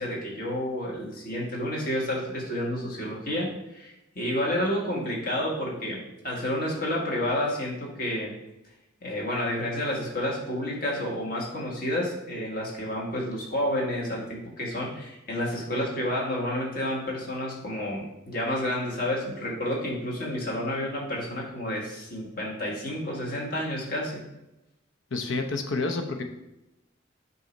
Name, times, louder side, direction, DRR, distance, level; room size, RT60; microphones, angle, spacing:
voice 1, 0.0-8.3 9.0-24.2, left 1 dB, 45° left, -3 dB, 1.8 m, -30 dB
voice 2, 25.1-26.2, left 3 dB, 85° left, 5 dB, 0.8 m, -29 dB
7.8 x 2.8 x 5.3 m, 0.92 s
head